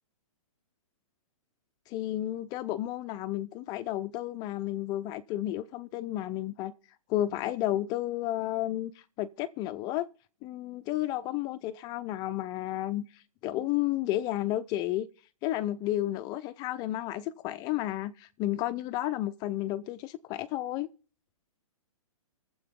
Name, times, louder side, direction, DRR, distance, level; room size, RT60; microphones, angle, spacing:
voice 1, 1.9-6.7 7.1-8.9 9.2-10.1 10.4-15.1 15.4-20.9, left 14 dB, 20° left, 0.5 m, -32 dB
23.0 x 7.6 x 3.6 m
hypercardioid pair, 145°, 18 cm